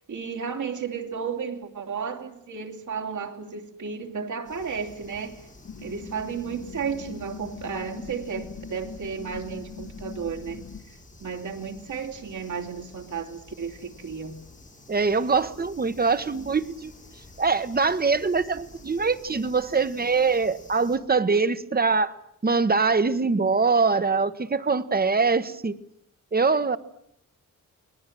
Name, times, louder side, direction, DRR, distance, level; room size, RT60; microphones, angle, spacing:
voice 1, 0.1-5.4 5.8-10.6 11.2-14.4, right 6 dB, 65° right, 4 dB, 3.1 m, -33 dB
sound 1, 4.4-21.0, left 2 dB, 25° left, 7.0 m, -50 dB
sound 2, 5.6-10.8, left 6 dB, 55° left, 1.7 m, -41 dB
voice 2, 14.9-16.9 17.4-22.1 22.4-25.8 26.3-26.8, right 4 dB, 30° right, 12 dB, 1.2 m, -23 dB
30.0 x 20.0 x 7.7 m, 0.76 s
wide cardioid pair, 135°, 32 cm